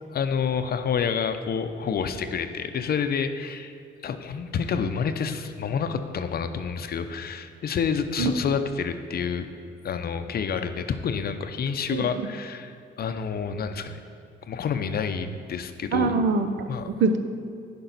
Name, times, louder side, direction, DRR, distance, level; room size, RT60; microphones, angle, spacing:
voice 1, 0.1-3.7 4.0-9.5 9.8-14.0 14.5-16.1 16.7-16.9, left 6 dB, 50° left, 8 dB, 0.6 m, -28 dB
voice 2, 15.9-17.2, right 4 dB, 70° right, 7 dB, 0.7 m, -24 dB
10.0 x 5.3 x 4.0 m, 2.5 s
cardioid pair, 90°, 20 cm